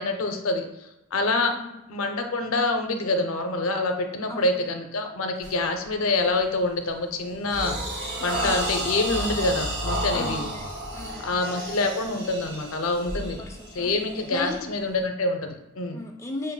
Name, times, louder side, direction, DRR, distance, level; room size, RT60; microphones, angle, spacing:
voice 1, 0.0-1.5 1.9-10.5 11.2-13.4 13.7-16.0, left 2 dB, 75° left, 6 dB, 0.5 m, -26 dB
voice 2, 4.3-4.6 8.4-8.6 10.1-10.7 10.9-11.3 13.2-13.9 14.3-14.7 15.9-16.5, left 2 dB, 15° left, 1 dB, 0.4 m, -36 dB
sound 1, 5.4-5.7 6.1-6.4 6.9-15.0, right 1 dB, 55° right, 1.4 m, -32 dB
6.8 x 2.5 x 2.2 m, 0.98 s
head